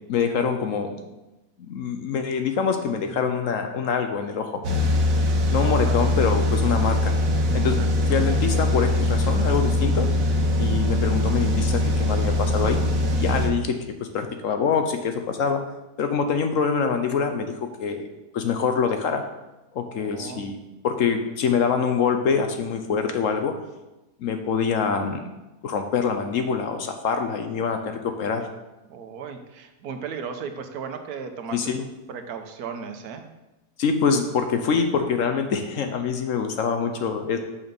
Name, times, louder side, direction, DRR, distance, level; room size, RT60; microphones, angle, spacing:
voice 1, 0.1-1.0 1.7-4.6 5.5-7.1 7.5-10.1 10.6-12.8 13.2-15.6 16.0-18.1 18.3-19.2 19.7-20.6 20.8-23.6 24.2-25.2 25.6-28.5 31.5-31.8 33.8-37.4, left 6 dB, 65° left, 7 dB, 1.0 m, -25 dB
sound 1, 4.6-13.5, left 1 dB, 60° right, 1.4 m, -22 dB
voice 2, 5.6-6.1 7.6-7.9 20.0-20.5 28.9-33.3, right 6 dB, 80° right, 6 dB, 1.3 m, -36 dB
6.6 x 5.8 x 5.3 m, 1.0 s
omnidirectional pair, 1.6 m